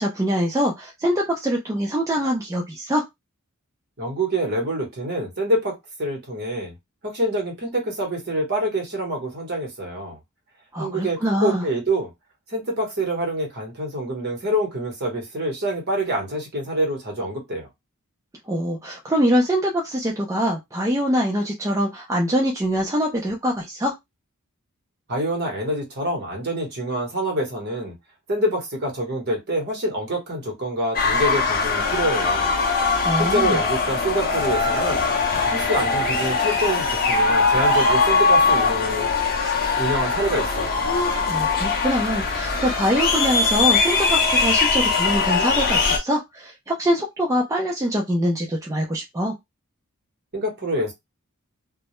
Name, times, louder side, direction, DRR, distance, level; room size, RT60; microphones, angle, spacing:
voice 1, 0.0-3.0 10.7-11.6 18.4-23.9 33.0-33.6 41.3-49.3, equal, 15° right, 0.4 m, -24 dB
voice 2, 4.0-6.7 7.0-10.2 10.8-12.1 12.5-17.7 25.1-28.0 28.3-32.6 33.2-35.1 35.5-39.1 39.8-40.7 50.3-50.9, right 1 dB, 50° right, 1.0 m, -26 dB
sound 1, 30.9-46.0, left 4 dB, 40° left, 0.6 m, -21 dB
2.2 x 2.0 x 2.9 m
head